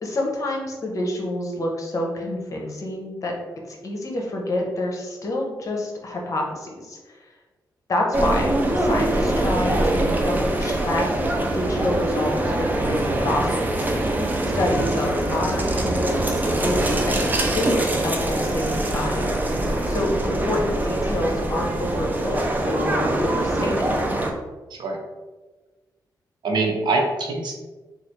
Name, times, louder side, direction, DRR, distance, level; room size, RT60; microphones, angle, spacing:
voice 1, 0.0-3.3 3.7-7.3 7.9-11.1 11.5-13.9 14.5-17.3 17.5-19.3 19.9-23.8, left 1 dB, 45° left, 0 dB, 0.8 m, -28 dB
sound 1, 8.1-24.3, right 1 dB, 25° right, 0.5 m, -23 dB
voice 2, 26.4-27.5, right 3 dB, 80° right, 1 dB, 0.7 m, -24 dB
3.2 x 2.4 x 4.4 m, 1.2 s
wide cardioid pair, 120°, 8 cm